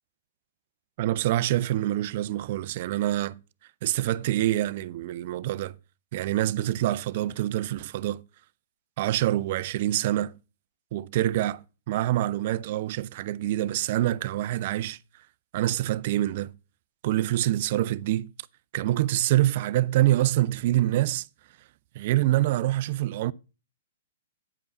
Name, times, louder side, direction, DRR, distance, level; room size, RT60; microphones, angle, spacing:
voice 1, 1.0-3.4 3.8-5.7 6.1-8.2 9.0-10.3 10.9-15.0 15.5-16.5 17.0-18.3 18.7-21.3 21.9-23.3, right 14 dB, 50° right, 0.5 m, -26 dB
9.6 x 5.4 x 5.8 m
hypercardioid pair, 120°, 0 cm